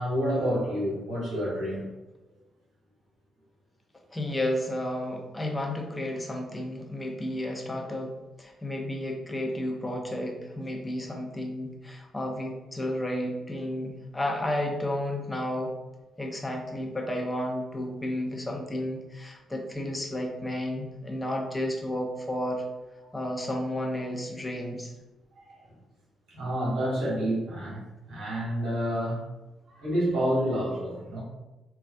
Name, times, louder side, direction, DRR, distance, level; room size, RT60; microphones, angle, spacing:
voice 1, 0.0-1.9 25.3-25.6 26.3-29.2 29.7-31.2, equal, 65° right, -6 dB, 1.4 m, -29 dB
voice 2, 4.1-15.7 16.2-22.6 23.1-24.9, left 1 dB, 15° left, 1 dB, 0.7 m, -32 dB
3.9 x 2.3 x 2.3 m, 1.1 s
hypercardioid pair, 45°, 0 cm